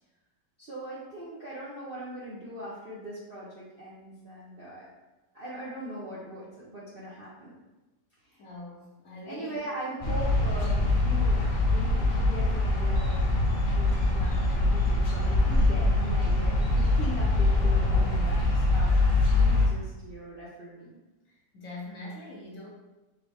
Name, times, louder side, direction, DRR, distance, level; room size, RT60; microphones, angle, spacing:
voice 1, 0.6-4.9 5.3-7.5 8.2-8.4 9.3-18.4 18.7-19.0 19.3-21.0, right 1 dB, 50° right, -8 dB, 0.6 m, -40 dB
voice 2, 8.4-9.6 18.6-19.0 21.3-22.7, left 2 dB, 60° left, -3 dB, 1.0 m, -43 dB
sound 1, 10.0-19.7, left 2 dB, 35° left, 0.8 m, -24 dB
3.8 x 3.1 x 3.4 m, 1.1 s
omnidirectional pair, 1.9 m